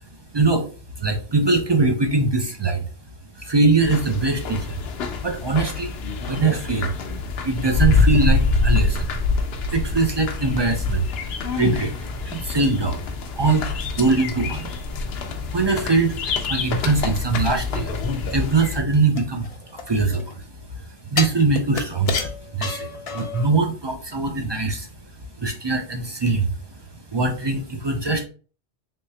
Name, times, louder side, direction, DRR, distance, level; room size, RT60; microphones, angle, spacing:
voice 1, 0.3-0.7 1.0-2.8 3.4-4.8 5.2-5.9 6.3-6.9 7.4-9.1 9.7-11.1 11.6-11.9 12.2-13.0 13.4-14.7 15.5-16.2 16.5-17.9 18.3-19.5 19.9-20.4 21.1-24.9 25.4-26.5 27.1-28.2, right 3 dB, 40° right, 4 dB, 0.4 m, -22 dB
sound 1, 3.8-18.8, left 4 dB, 75° left, 0.8 m, -25 dB
sound 2, 19.2-20.3 21.2-23.5 23.9-24.0, left 5 dB, 45° left, 0.5 m, -29 dB
3.5 x 3.2 x 2.7 m, 0.38 s
omnidirectional pair, 1.1 m